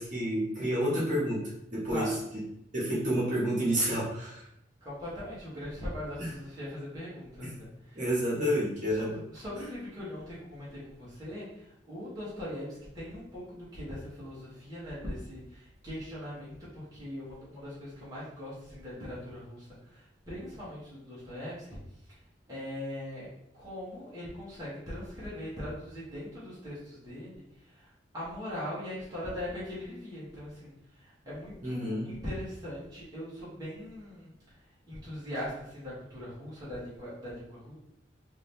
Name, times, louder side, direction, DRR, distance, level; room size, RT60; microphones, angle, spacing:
voice 1, 0.0-1.4 1.7-2.1 2.7-4.5 6.2-6.3 7.4-7.5 7.9-9.1 31.6-32.1, equal, 40° right, -7 dB, 1.4 m, -29 dB
voice 2, 1.9-2.2 4.8-8.0 8.3-8.6 8.9-21.8 22.1-22.2 22.5-34.6 34.9-37.8, left 1 dB, 20° right, -10 dB, 1.3 m, -41 dB
3.7 x 2.8 x 3.3 m, 0.78 s
head